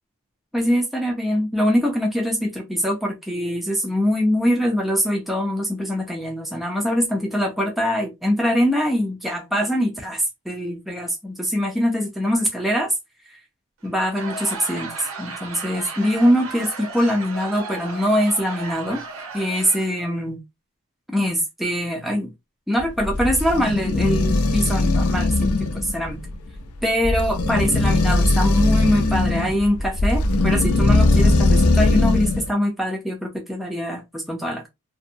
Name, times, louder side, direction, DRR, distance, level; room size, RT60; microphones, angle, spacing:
voice 1, 0.5-12.9 13.3-13.4 13.8-19.0 19.3-20.4 21.1-22.3 22.7-26.2 26.8-34.7, equal, ahead, 0.4 m, -23 dB
Laughter / Crowd, 13.8-20.1, right 3 dB, 70° right, 0.7 m, -35 dB
sound 1, 22.8-32.5, left 2 dB, 85° left, 0.5 m, -20 dB
2.6 x 2.0 x 2.6 m
head